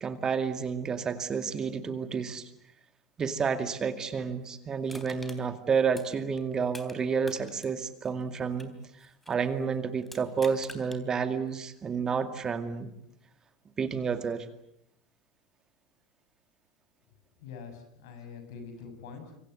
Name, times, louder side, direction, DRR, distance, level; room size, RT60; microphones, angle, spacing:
voice 1, 0.0-2.5 3.2-8.7 9.0-12.9 13.8-14.5, right 6 dB, 30° right, 10 dB, 2.2 m, -30 dB
Crushing, 4.9-7.0 7.2-9.5 10.0-11.0 11.5-11.6, left 1 dB, 5° left, 3.6 m, -48 dB
voice 2, 17.4-19.4, left 5 dB, 65° left, 7 dB, 6.9 m, -44 dB
26.5 x 25.0 x 8.0 m, 0.75 s
hypercardioid pair, 85°, 2 cm